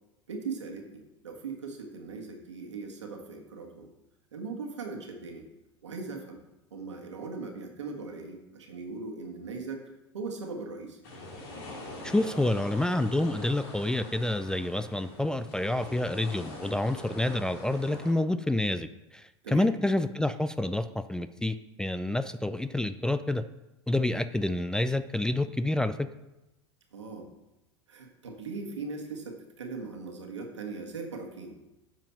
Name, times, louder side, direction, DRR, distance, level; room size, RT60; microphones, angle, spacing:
voice 1, 0.3-3.9 4.3-5.4 5.8-6.4 6.7-9.8 10.1-11.0 19.4-19.7 26.9-27.3 27.9-31.6, right 4 dB, 80° right, 2 dB, 1.6 m, -39 dB
sound 1, 11.0-18.1, left 2 dB, 60° left, 2.4 m, -43 dB
voice 2, 12.0-18.9 19.1-23.4 23.9-25.9, left 1 dB, 5° left, 12 dB, 0.4 m, -28 dB
8.8 x 5.7 x 5.8 m, 0.97 s
figure-of-eight pair, 85°, 15 cm